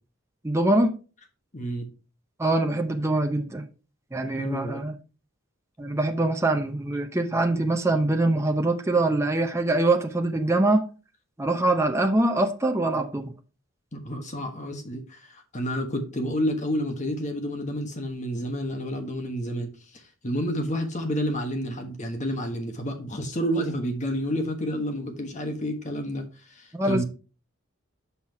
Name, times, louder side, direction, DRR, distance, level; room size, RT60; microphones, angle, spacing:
voice 1, 0.4-1.0 2.4-3.7 4.1-4.9 5.8-10.9 11.4-13.3 26.7-27.0, right 2 dB, 15° right, 0.7 m, -23 dB
voice 2, 1.5-1.8 4.4-4.8 13.9-27.0, equal, 35° left, 1.3 m, -30 dB
6.1 x 5.7 x 4.6 m
head